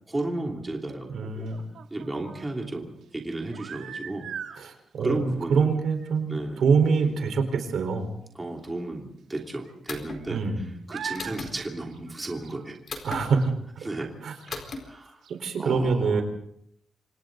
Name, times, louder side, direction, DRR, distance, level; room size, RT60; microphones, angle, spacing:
voice 1, 0.1-1.5 1.9-4.3 5.0-5.7 6.3-6.6 7.0-7.2 8.3-10.4 10.9-12.8 13.8-14.1 14.8-15.2 15.6-16.2, right 2 dB, 15° right, 0 dB, 3.0 m, -33 dB
voice 2, 1.1-1.6 4.6-8.1 10.3-10.6 13.0-13.9 14.2-14.3 15.4-16.2, right 5 dB, 70° right, 6 dB, 4.4 m, -25 dB
sound 1, 1.5-2.5 3.4-4.6 5.6-5.8 6.0-6.1 6.6-6.7 7.0-7.1 8.8-8.9 9.7-10.5 10.9-11.4 11.8-12.7 13.4-13.5 14.4-14.5 14.9-15.0 15.2-15.4, right 7 dB, 90° right, 2.6 m, -40 dB
sound 2, 9.9-10.2 11.1-11.5 12.9-13.2 14.5-14.8, left 4 dB, 45° left, 4.5 m, -36 dB
29.0 x 26.5 x 4.0 m, 0.71 s
wide cardioid pair, 175°, 0 cm